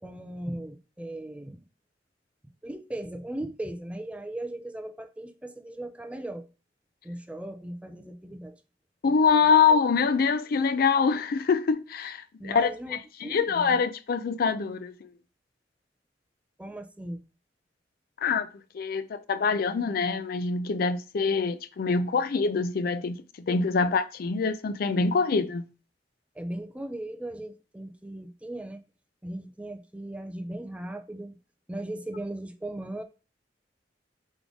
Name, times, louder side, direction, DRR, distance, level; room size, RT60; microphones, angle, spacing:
voice 1, 0.0-1.6 2.6-6.5 7.0-8.6 9.7-9.8 12.4-13.6 16.6-17.2 23.8-23.9 26.4-28.8 29.2-31.4 31.7-33.0, right 1 dB, 5° right, 0.4 m, -38 dB
voice 2, 9.0-15.1 18.2-18.5 18.7-23.2 23.5-25.6, left 5 dB, 55° left, 0.4 m, -25 dB
3.7 x 3.6 x 3.5 m
head